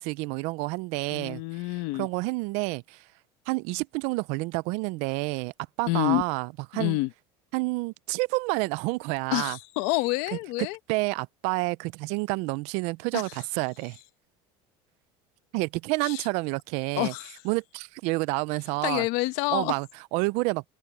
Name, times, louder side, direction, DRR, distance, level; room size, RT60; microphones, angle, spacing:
voice 1, 0.0-3.0 3.5-5.5 5.8-7.0 7.5-9.6 10.6-14.0 15.5-17.1 17.4-19.1 19.5-20.6, right 25 dB, 60° right, 0.5 m, -29 dB
voice 2, 1.1-2.1 5.9-6.2 6.7-7.1 9.3-10.8 13.1-13.2 16.0-16.2 17.0-17.3 18.8-19.7, left 21 dB, 65° left, 1.0 m, -28 dB
cardioid pair, 160°, 13 cm